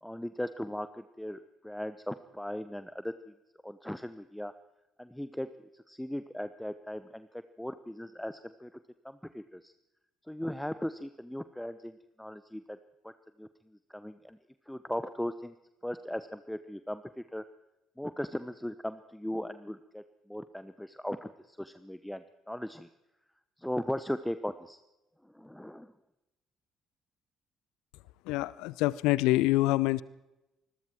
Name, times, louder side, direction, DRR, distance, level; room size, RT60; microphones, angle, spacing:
voice 1, 0.0-3.3 3.6-4.5 5.0-8.7 9.0-9.7 10.3-12.8 13.0-13.1 13.4-14.4 14.7-15.5 15.8-17.4 18.0-22.9 23.6-24.8 25.2-25.9, equal, 5° left, 12 dB, 1.1 m, -38 dB
voice 2, 28.2-30.0, left 18 dB, 65° left, 21 dB, 0.7 m, -26 dB
26.5 x 21.5 x 4.6 m, 0.96 s
figure-of-eight pair, 50°, 0 cm